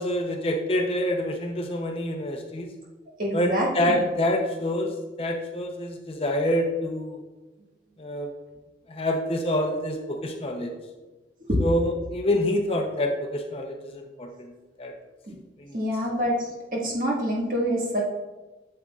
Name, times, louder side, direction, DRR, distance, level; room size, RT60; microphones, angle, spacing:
voice 1, 0.0-2.7 3.3-4.9 5.2-7.2 8.0-8.3 8.9-10.7 11.6-14.5 14.8-14.9 15.6-15.8, left 1 dB, 30° left, 3 dB, 0.6 m, -27 dB
voice 2, 3.2-4.0 11.5-11.6 15.3-15.4 15.7-18.0, equal, 50° right, -3 dB, 1.6 m, -26 dB
8.0 x 7.6 x 2.4 m, 1.2 s
head